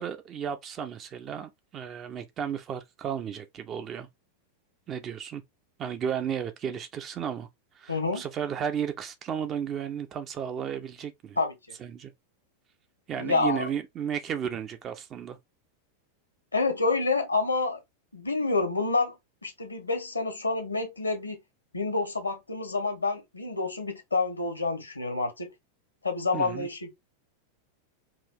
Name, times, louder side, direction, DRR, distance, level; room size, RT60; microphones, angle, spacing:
voice 1, 0.0-4.1 4.9-5.4 5.8-7.5 7.8-11.4 11.8-12.1 13.1-15.4 26.3-26.7, right 8 dB, 30° right, 0.9 m, -33 dB
voice 2, 7.9-8.2 11.4-11.6 13.2-13.6 16.5-17.8 18.1-19.2 19.4-21.4 21.7-25.5 26.0-27.0, left 3 dB, 80° left, 1.3 m, -28 dB
4.8 x 2.7 x 3.7 m
figure-of-eight pair, 90°, 0 cm